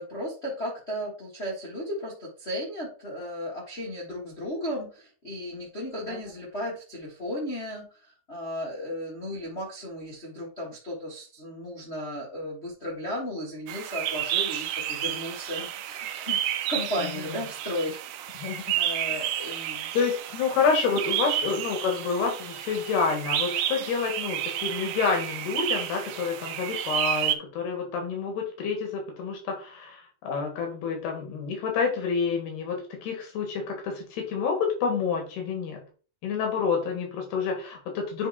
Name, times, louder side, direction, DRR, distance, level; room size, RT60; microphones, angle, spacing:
voice 1, 0.0-18.0 18.7-19.9 20.8-21.0, equal, 70° left, -4 dB, 0.6 m, -35 dB
sound 1, 13.7-27.4, right 11 dB, 80° right, 1.9 m, -31 dB
voice 2, 19.9-35.8 36.2-38.3, left 5 dB, 90° left, 2 dB, 3.9 m, -28 dB
9.4 x 3.2 x 4.2 m, 0.37 s
omnidirectional pair, 4.4 m